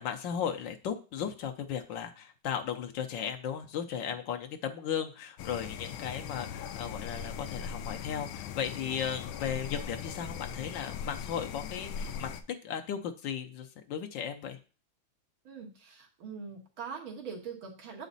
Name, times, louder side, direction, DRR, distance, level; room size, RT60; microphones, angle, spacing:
voice 1, 0.0-12.3 12.6-14.6, left 8 dB, 75° left, 5 dB, 1.3 m, -36 dB
sound 1, 5.4-12.4, left 7 dB, 90° left, 1.4 m, -39 dB
voice 2, 15.4-18.1, right 6 dB, 85° right, 1 dB, 2.3 m, -42 dB
8.2 x 5.1 x 4.0 m, 0.37 s
omnidirectional pair, 2.1 m